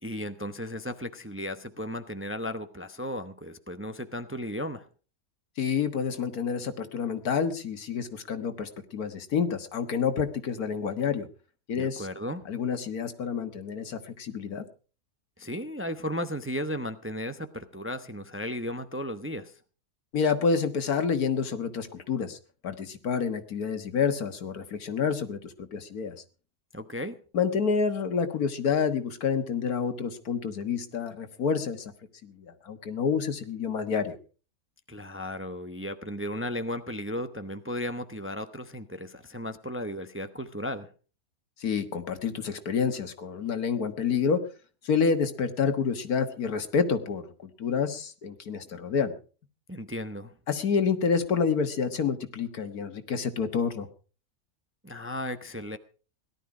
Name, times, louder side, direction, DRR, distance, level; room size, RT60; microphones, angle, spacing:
voice 1, 0.0-4.9 11.7-12.5 15.4-19.6 26.7-27.2 34.9-40.9 49.7-50.3 54.8-55.8, left 1 dB, 10° right, 9 dB, 0.7 m, -35 dB
voice 2, 5.6-11.3 11.7-12.1 12.5-14.6 20.1-22.4 22.6-26.2 27.3-31.9 32.2-34.2 41.6-44.4 44.8-49.1 50.5-53.9, left 6 dB, 85° left, 9 dB, 1.9 m, -28 dB
17.5 x 12.0 x 4.9 m, 0.38 s
omnidirectional pair, 1.5 m